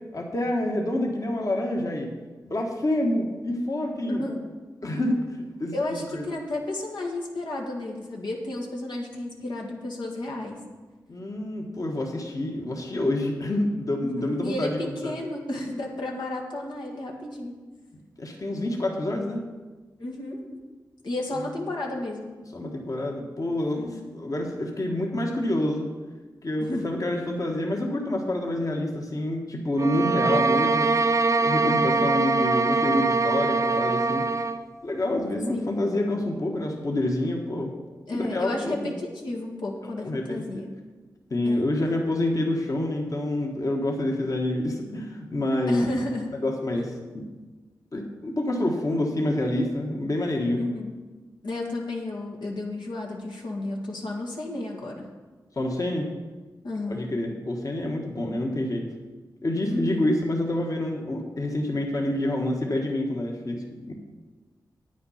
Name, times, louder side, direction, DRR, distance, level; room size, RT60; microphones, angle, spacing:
voice 1, 0.1-2.1 2.4-4.2 4.8-5.7 6.1-6.2 11.1-15.1 18.2-19.4 22.5-25.9 26.4-31.0 31.4-34.2 34.8-37.7 38.1-38.9 40.0-40.6 41.3-45.8 46.4-47.2 47.9-50.6 55.5-56.1 56.9-58.9 59.4-63.6 63.9-64.0, left 1 dB, 50° left, 1 dB, 1.5 m, -27 dB
voice 2, 4.1-4.5 5.7-10.6 14.0-17.6 20.0-20.6 21.0-22.4 23.8-24.2 26.6-26.9 35.5-35.7 38.1-40.7 41.4-41.7 45.7-46.4 50.6-51.0 51.4-55.1 56.6-57.2 59.6-60.2, left 2 dB, 80° left, -1 dB, 1.8 m, -32 dB
sound 1, 29.8-34.6, right 3 dB, 45° right, 0.5 m, -23 dB
9.3 x 9.0 x 5.7 m, 1.3 s
cardioid pair, 60°, 8 cm